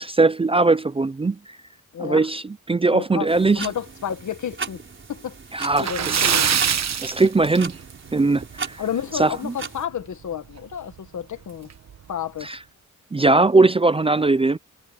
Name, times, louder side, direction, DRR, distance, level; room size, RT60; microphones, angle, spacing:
voice 1, 0.0-1.4 2.0-3.7 5.5-6.3 7.0-7.8 8.1-8.8 9.2-9.5 12.4-12.6 13.1-14.6, right 3 dB, 20° right, 0.4 m, -20 dB
voice 2, 1.9-2.3 2.9-3.3 3.5-4.8 5.1-5.4 5.8-6.6 8.8-11.7 12.1-12.5, left 9 dB, 70° left, 1.5 m, -31 dB
sound 1, 3.3-9.9, right 5 dB, 40° right, 4.5 m, -37 dB
Splash splatter, 5.7-8.1 8.4-8.6 9.0-9.1 10.6-10.7 11.0-11.1 11.7-12.0, right 8 dB, 60° right, 1.2 m, -23 dB
wide cardioid pair, 155°, 30 cm